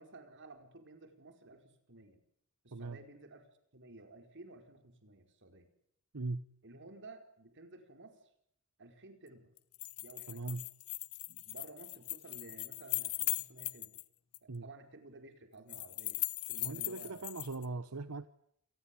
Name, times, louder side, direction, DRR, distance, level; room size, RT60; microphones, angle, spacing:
voice 1, 0.0-2.2 2.6-3.5 3.7-5.7 6.6-8.2 8.8-9.5 10.0-10.4 11.4-14.0 14.4-17.3, right 2 dB, 55° right, 7 dB, 4.7 m, -54 dB
voice 2, 6.1-6.4 10.3-10.7 14.5-14.7 16.6-18.3, right 3 dB, 85° right, 14 dB, 1.0 m, -40 dB
sound 1, 9.6-14.0 14.3-14.4 15.7-17.6, left 19 dB, 85° left, 1.0 m, -39 dB
28.0 x 19.0 x 8.6 m, 0.73 s
head